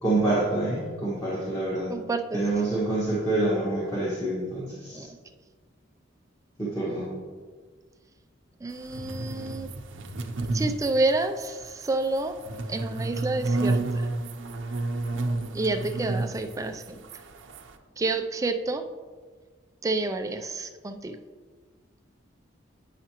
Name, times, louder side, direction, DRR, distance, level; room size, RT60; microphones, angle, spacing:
voice 1, 0.0-1.9 2.3-5.1 6.6-7.1, right 2 dB, 20° left, -8 dB, 1.5 m, -27 dB
voice 2, 1.9-2.4 4.9-5.2 8.6-9.7 10.5-12.4 12.7-14.1 15.5-17.0 18.0-18.8 19.8-21.2, right 2 dB, 15° right, 6 dB, 0.3 m, -29 dB
sound 1, 8.8-17.8, right 2 dB, 70° right, 0.6 m, -31 dB
9.1 x 5.7 x 2.9 m, 1.5 s
head